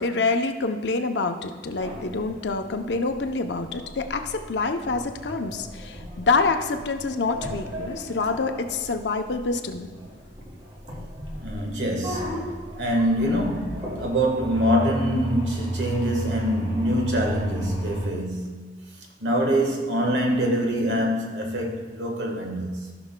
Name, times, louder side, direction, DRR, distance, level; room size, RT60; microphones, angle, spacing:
voice 1, 0.0-9.9, left 3 dB, 70° left, 0.7 m, -26 dB
sound 1, 1.7-18.1, right 1 dB, 30° right, 1.8 m, -35 dB
voice 2, 11.4-18.7 19.2-23.0, equal, 70° right, 1.5 m, -25 dB
15.0 x 6.0 x 2.2 m
head